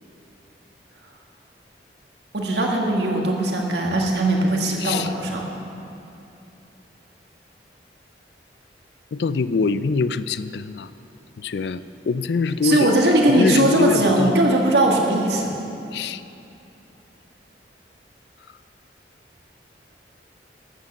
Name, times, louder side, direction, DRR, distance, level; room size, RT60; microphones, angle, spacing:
voice 1, 2.3-5.4 12.6-15.5, right 1 dB, 75° right, 0 dB, 1.8 m, -19 dB
voice 2, 4.8-5.1 9.1-10.9 11.4-14.4 15.9-16.2, left 4 dB, 70° left, 14 dB, 0.4 m, -24 dB
13.0 x 8.3 x 6.6 m, 2.8 s
head